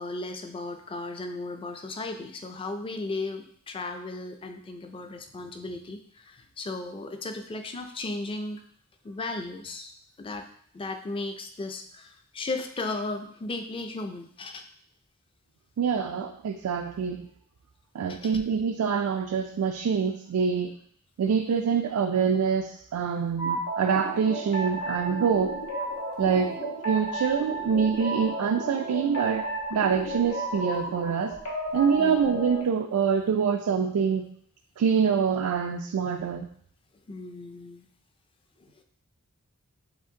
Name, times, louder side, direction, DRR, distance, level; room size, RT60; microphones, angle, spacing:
voice 1, 0.0-8.6 9.0-9.9 10.2-10.5 10.7-14.6 18.1-18.3 26.2-26.6 32.0-32.2 37.1-37.9 38.6-38.7, left 2 dB, 25° left, 6 dB, 0.4 m, -36 dB
voice 2, 15.8-17.3 17.9-20.8 21.2-25.6 26.2-26.5 26.8-31.3 31.7-34.3 34.8-36.5, right 6 dB, 85° right, 5 dB, 0.3 m, -25 dB
sound 1, 23.4-32.6, right 1 dB, 85° left, 1.2 m, -33 dB
7.1 x 2.5 x 2.7 m, 0.63 s
head